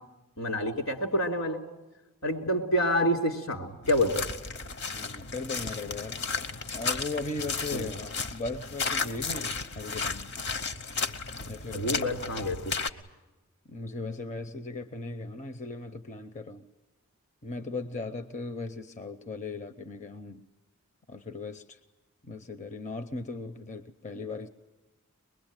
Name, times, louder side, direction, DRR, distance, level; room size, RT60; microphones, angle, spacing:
voice 1, 0.4-1.6 2.2-4.2 7.7-7.9 11.7-12.6, equal, 75° left, 4 dB, 3.7 m, -27 dB
sound 1, 3.8-12.9, left 4 dB, 50° left, 1.1 m, -34 dB
voice 2, 4.9-6.2 6.7-10.3 11.5-12.1 13.7-16.6 17.4-20.4 21.1-21.8 22.2-24.5, left 3 dB, 35° left, 9 dB, 0.7 m, -38 dB
23.5 x 21.5 x 9.0 m, 1.1 s
head